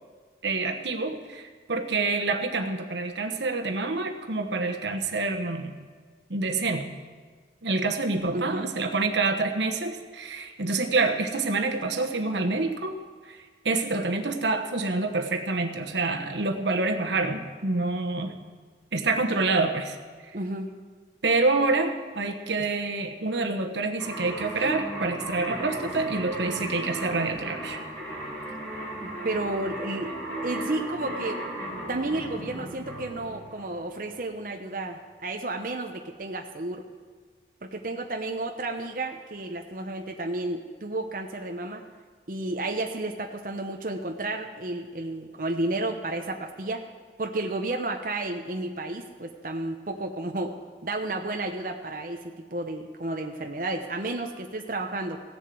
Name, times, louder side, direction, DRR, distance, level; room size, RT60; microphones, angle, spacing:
voice 1, 0.4-5.8 6.3-6.9 7.6-13.0 13.3-13.4 13.6-18.3 18.9-20.0 21.2-27.8, right 3 dB, 90° right, 4 dB, 1.2 m, -27 dB
voice 2, 8.3-8.7 20.3-20.7 22.6-22.7 29.0-30.2 30.4-31.4 31.9-36.8 37.6-41.8 42.3-46.8 47.2-50.6 50.8-55.2, right 2 dB, 50° right, 3 dB, 0.9 m, -32 dB
sound 1, 24.0-34.1, right 1 dB, 10° left, 3.5 m, -36 dB
16.5 x 7.3 x 7.7 m, 1.5 s
head